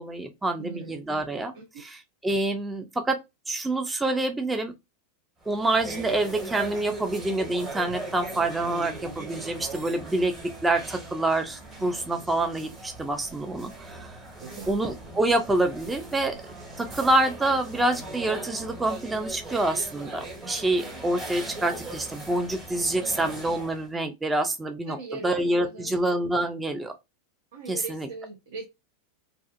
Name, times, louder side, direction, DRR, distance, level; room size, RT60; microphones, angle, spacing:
voice 1, 0.0-3.2 3.5-4.7 5.5-10.3 10.6-14.1 14.7-16.4 16.8-25.0 25.2-26.9 27.7-28.1, right 2 dB, 15° right, 0.4 m, -27 dB
voice 2, 0.6-0.9 1.5-1.8 14.4-14.7 24.9-26.0 27.5-28.6, right 4 dB, 70° right, 0.7 m, -40 dB
sound 1, 5.4-23.9, right 2 dB, 30° right, 1.4 m, -40 dB
2.4 x 2.4 x 2.5 m
hypercardioid pair, 95°, 0 cm